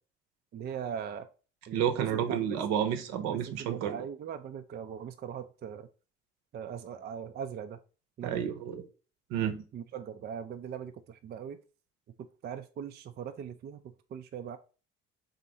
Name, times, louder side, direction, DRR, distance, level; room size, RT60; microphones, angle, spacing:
voice 1, 0.5-1.3 1.7-2.6 3.2-5.9 6.5-7.8 8.2-8.5 9.7-11.6 12.2-14.6, right 8 dB, 35° right, 0.4 m, -40 dB
voice 2, 1.7-4.0 8.2-8.8 9.3-9.6, right 9 dB, 65° right, 0.8 m, -30 dB
3.7 x 2.8 x 3.9 m
hypercardioid pair, 60°, 29 cm